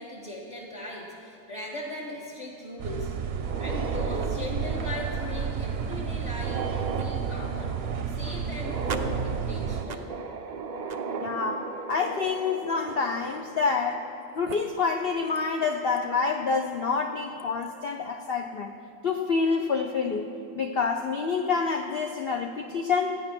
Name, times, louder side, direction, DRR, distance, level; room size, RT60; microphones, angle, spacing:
voice 1, 0.0-7.8 8.1-10.1, left 2 dB, 30° left, -3 dB, 1.4 m, -39 dB
sound 1, 2.8-9.8, right 7 dB, 55° right, 0.8 m, -31 dB
sound 2, 3.3-14.1 14.5-14.6 15.4-15.5 16.0-16.1 17.4-17.7, right 4 dB, 75° right, 0.4 m, -37 dB
voice 2, 11.2-14.0 14.3-18.8 19.0-20.3 20.5-23.2, left 5 dB, 60° left, 4 dB, 0.6 m, -27 dB
14.0 x 9.7 x 6.0 m, 2.7 s
omnidirectional pair, 1.5 m